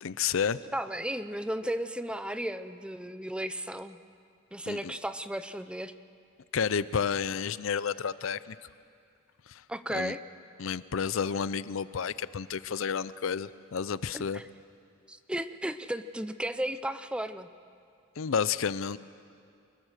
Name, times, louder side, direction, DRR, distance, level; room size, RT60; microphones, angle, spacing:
voice 1, 0.0-0.6 4.7-4.9 6.5-8.6 9.5-9.6 9.9-10.2 10.6-14.4 18.2-19.0, left 6 dB, 75° left, 17 dB, 0.5 m, -31 dB
voice 2, 0.7-4.0 4.5-5.9 9.7-10.2 14.1-14.4 15.1-17.5, right 1 dB, 5° right, 11 dB, 0.5 m, -34 dB
24.5 x 21.5 x 6.6 m, 2.4 s
head